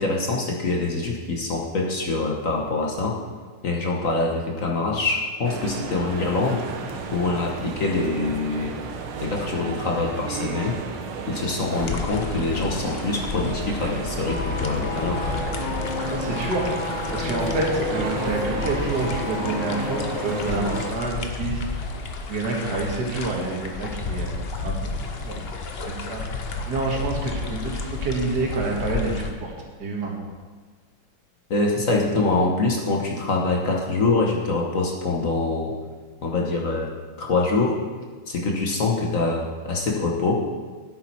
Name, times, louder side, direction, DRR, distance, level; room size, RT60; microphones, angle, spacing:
voice 1, 0.0-3.2 3.6-6.6 7.1-8.7 9.2-10.8 11.3-15.3 31.5-35.7 36.2-36.9 37.2-37.8 38.3-40.4, left 3 dB, 50° left, 0 dB, 1.2 m, -24 dB
sound 1, 5.4-21.0, right 5 dB, 85° right, 1.7 m, -33 dB
sound 2, 11.7-29.3, left 3 dB, 65° left, 0.6 m, -32 dB
sound 3, 14.3-21.0 21.2-21.4, left 5 dB, 90° left, 1.7 m, -32 dB
voice 2, 16.1-16.7 17.1-21.6 22.3-24.3 24.6-24.7 25.2-25.4 25.9-26.2 26.7-29.5 29.8-30.1, right 3 dB, 55° right, -1 dB, 2.2 m, -27 dB
10.5 x 8.6 x 4.4 m, 1.4 s
omnidirectional pair, 2.3 m